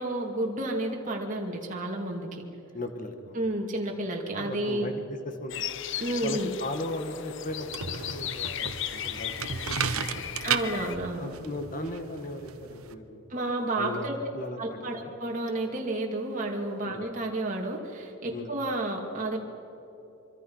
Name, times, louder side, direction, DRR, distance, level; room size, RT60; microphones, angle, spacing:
voice 1, 0.0-2.4 3.3-4.9 6.0-6.5 10.4-11.3 13.3-14.2 14.6-19.4, right 1 dB, 35° right, 0 dB, 2.5 m, -31 dB
voice 2, 2.7-3.4 4.4-5.6 6.2-10.3 11.2-13.2 13.8-14.1 14.3-14.6 15.0-15.2 16.9-17.1 18.3-18.5, left 1 dB, 35° left, 6 dB, 1.8 m, -37 dB
sound 1, 5.5-11.0, left 11 dB, 55° left, 0.6 m, -36 dB
sound 2, 7.5-12.9, right 6 dB, 75° right, 1.1 m, -34 dB
25.5 x 24.5 x 5.7 m, 2.9 s
head